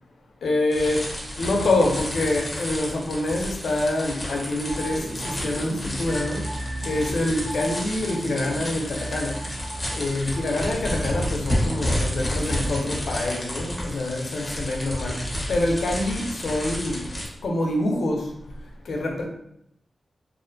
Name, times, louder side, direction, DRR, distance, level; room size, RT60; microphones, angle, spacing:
voice 1, 0.4-1.0 1.4-6.5 6.8-9.3 9.9-15.1 15.5-17.0 17.4-18.2 18.9-19.2, left 2 dB, 80° left, 0 dB, 0.4 m, -26 dB
sound 1, 0.7-17.3, equal, 15° left, 0.5 m, -31 dB
sound 2, 4.6-14.0 14.3-14.4, right 1 dB, 65° right, 0.8 m, -37 dB
2.4 x 2.1 x 2.6 m, 0.77 s
wide cardioid pair, 180°, 0 cm